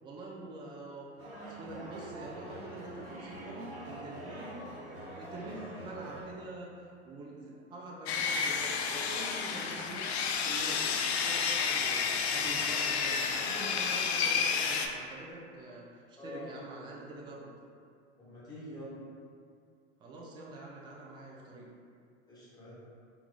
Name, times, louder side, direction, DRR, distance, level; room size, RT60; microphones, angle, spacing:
voice 1, 0.0-1.1 1.5-17.5 20.0-21.7, right 2 dB, 15° right, -4 dB, 0.4 m, -46 dB
sound 1, 1.2-6.2, right 1 dB, 35° right, 1.1 m, -45 dB
Sawing, 8.1-14.9, left 6 dB, 65° left, 0.4 m, -30 dB
voice 2, 16.2-16.5 18.2-19.0 22.3-22.7, equal, 10° left, -10 dB, 1.5 m, -45 dB
3.8 x 2.3 x 3.1 m, 2.2 s
hypercardioid pair, 95°, 35 cm